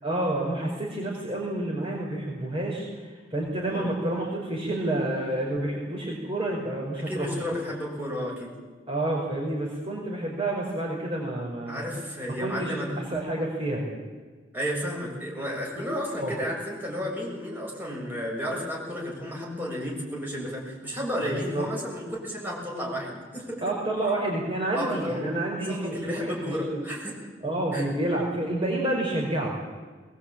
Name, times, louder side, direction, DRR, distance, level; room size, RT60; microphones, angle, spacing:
voice 1, 0.0-7.3 8.9-11.8 12.4-12.8 13.1-13.9 16.2-16.3 21.5-21.6 23.6-26.3 26.7-26.8 27.4-29.6, right 1 dB, 30° right, -2 dB, 5.0 m, -29 dB
voice 2, 6.9-8.6 11.7-12.9 14.5-23.7 24.7-25.2 25.7-27.2 27.7-27.8, equal, 10° right, -3 dB, 6.9 m, -32 dB
22.0 x 20.5 x 8.7 m, 1.4 s
head